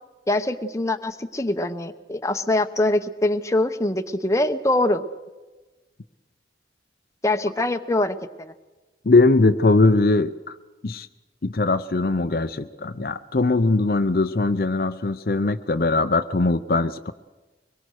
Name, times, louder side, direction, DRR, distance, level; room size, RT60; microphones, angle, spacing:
voice 1, 0.3-5.0 7.2-8.5, left 1 dB, 15° left, 7 dB, 0.9 m, -23 dB
voice 2, 9.0-10.5 10.8-11.1 11.4-17.1, left 3 dB, 55° left, 10 dB, 0.6 m, -20 dB
24.0 x 21.5 x 6.4 m, 1.2 s
head